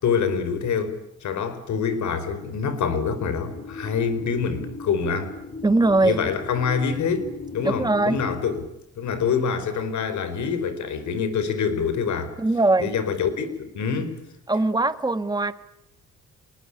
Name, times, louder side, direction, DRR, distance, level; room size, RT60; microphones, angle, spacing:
voice 1, 0.0-5.4 6.0-8.6 9.0-12.3 12.8-14.1, left 6 dB, 70° left, 4.5 m, -26 dB
sound 1, 3.5-8.7, left 4 dB, 20° left, 2.8 m, -38 dB
voice 2, 5.6-6.2 7.8-8.2 12.4-12.9 14.5-15.5, right 2 dB, 15° right, 1.7 m, -21 dB
27.5 x 20.0 x 9.8 m
cardioid pair, 90°, 30 cm